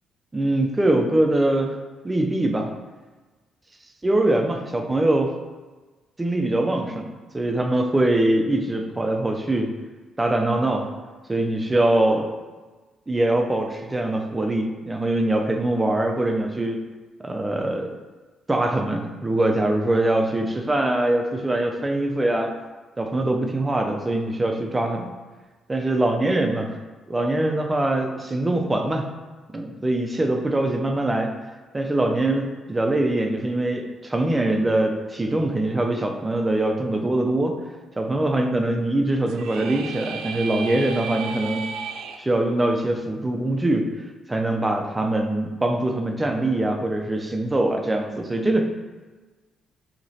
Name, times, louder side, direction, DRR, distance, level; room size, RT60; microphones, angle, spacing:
voice 1, 0.3-1.8 2.0-2.7 4.0-5.3 6.2-9.7 10.2-10.9 11.3-12.3 13.1-16.8 17.2-17.9 18.5-22.5 23.0-25.1 25.7-26.8 27.1-29.1 29.5-31.3 31.7-37.6 38.0-41.7 42.2-43.9 44.3-48.6, right 1 dB, 15° right, 3 dB, 0.5 m, -23 dB
sound 1, 39.3-42.2, right 5 dB, 85° right, 0.3 m, -33 dB
5.9 x 2.9 x 2.8 m, 1.3 s
cardioid pair, 90°, 0 cm